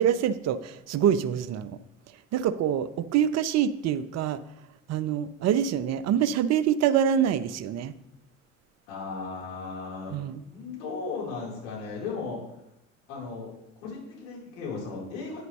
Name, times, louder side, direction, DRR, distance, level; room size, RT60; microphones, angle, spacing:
voice 1, 0.0-1.8 2.3-4.4 4.9-7.9 10.1-10.4, right 9 dB, 40° right, 13 dB, 0.7 m, -25 dB
voice 2, 8.9-10.2 10.4-12.4 13.1-13.5 13.8-15.4, left 4 dB, 70° left, -5 dB, 4.1 m, -36 dB
9.5 x 9.3 x 3.2 m, 0.85 s
figure-of-eight pair, 60°, 39 cm